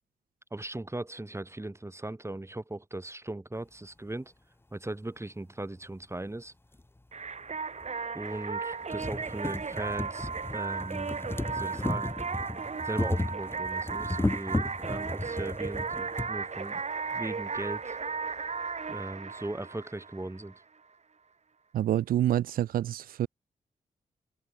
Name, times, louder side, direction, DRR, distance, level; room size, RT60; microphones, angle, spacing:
voice 1, 0.5-4.3 4.7-6.5 8.1-11.1 11.5-12.1 12.8-16.8 17.1-18.0 18.9-20.6, right 2 dB, 20° right, 3.2 m, -38 dB
sound 1, 6.7-6.8 7.8-7.9 8.4-8.5 8.7-16.3 17.2-17.3 17.6-17.7, left 2 dB, 15° left, 1.1 m, -34 dB
sound 2, 7.1-20.6, right 5 dB, 50° right, 3.0 m, -35 dB
voice 2, 21.7-23.3, right 12 dB, 85° right, 0.7 m, -27 dB
open air
supercardioid pair, 45°, 15 cm